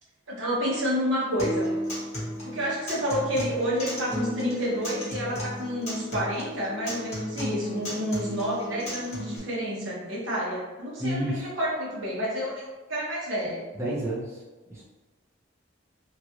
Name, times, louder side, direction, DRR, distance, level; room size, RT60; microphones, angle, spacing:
voice 1, 0.3-1.8 2.4-13.6, equal, 75° right, -6 dB, 1.2 m, -29 dB
Acoustic guitar, 1.4-9.4, equal, 35° left, 1.0 m, -34 dB
voice 2, 11.0-11.5 13.7-14.4 14.7-14.8, equal, 15° right, -8 dB, 0.6 m, -30 dB
3.0 x 2.4 x 2.9 m, 1.2 s
head